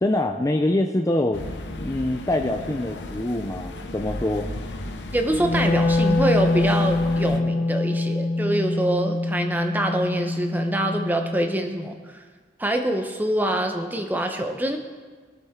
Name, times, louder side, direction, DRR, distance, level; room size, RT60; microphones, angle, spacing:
voice 1, 0.0-1.4 1.7-4.5, left 1 dB, 15° left, 4 dB, 0.4 m, -24 dB
sound 1, 1.3-7.4, left 2 dB, 70° left, 0.9 m, -35 dB
voice 2, 5.1-12.2 12.6-14.8, right 1 dB, 10° right, 4 dB, 0.8 m, -25 dB
Wind instrument woodwind instrument, 5.3-11.5, left 2 dB, 55° left, 1.4 m, -24 dB
20.0 x 7.4 x 3.7 m, 1.5 s
head